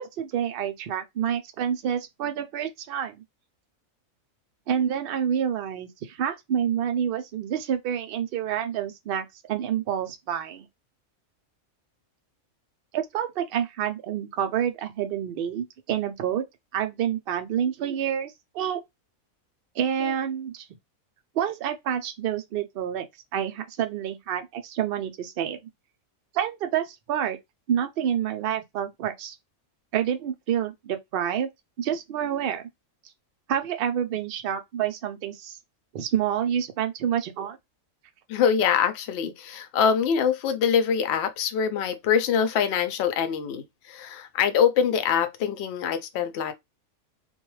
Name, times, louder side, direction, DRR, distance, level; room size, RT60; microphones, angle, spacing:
voice 1, 0.0-3.2 4.7-10.7 12.9-16.4 16.7-18.8 19.8-20.7 21.4-23.1 23.3-25.6 26.3-27.4 27.7-29.4 29.9-31.5 31.8-32.6 33.5-35.6 35.9-37.6, right 9 dB, 70° right, 0.5 m, -28 dB
voice 2, 38.3-46.5, left 7 dB, 65° left, 0.6 m, -24 dB
2.3 x 2.2 x 3.0 m
omnidirectional pair, 1.5 m